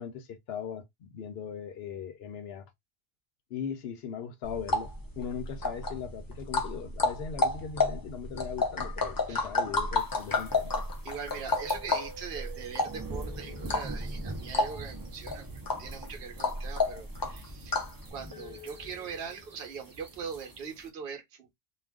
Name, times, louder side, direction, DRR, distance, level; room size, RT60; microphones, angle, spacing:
voice 1, 0.0-2.7 3.5-10.8, left 7 dB, 75° left, 0.8 m, -39 dB
sound 1, 4.4-18.0, left 3 dB, 30° left, 0.4 m, -31 dB
sound 2, 10.0-20.9, right 2 dB, 25° right, 0.5 m, -44 dB
voice 2, 11.0-17.8 18.1-21.5, right 6 dB, 65° right, 0.9 m, -41 dB
2.4 x 2.2 x 3.3 m
omnidirectional pair, 1.1 m